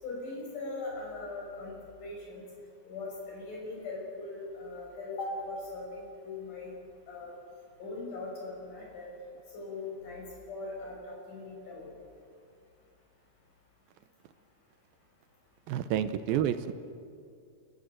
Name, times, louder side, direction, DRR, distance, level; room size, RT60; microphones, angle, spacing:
voice 1, 0.0-2.4 2.9-6.7 7.1-7.3 7.8-9.1 9.5-11.9, left 3 dB, 55° left, -2 dB, 7.5 m, -40 dB
voice 2, 15.7-16.7, right 10 dB, 80° right, 11 dB, 2.5 m, -29 dB
29.5 x 15.0 x 7.9 m, 2.4 s
omnidirectional pair, 4.3 m